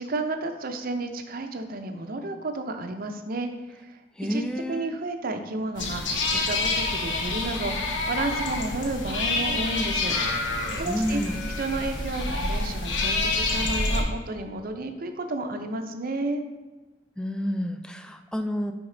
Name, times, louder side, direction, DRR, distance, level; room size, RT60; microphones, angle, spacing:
voice 1, 0.0-4.0 4.3-4.4 4.7-11.2 11.6-16.4, right 2 dB, 50° right, 6 dB, 0.6 m, -32 dB
voice 2, 4.2-4.9 10.9-11.4 17.2-18.7, equal, 5° left, 7 dB, 0.3 m, -29 dB
sound 1, 5.7-14.0, left 2 dB, 80° left, 0.9 m, -27 dB
6.4 x 3.5 x 4.9 m, 1.2 s
head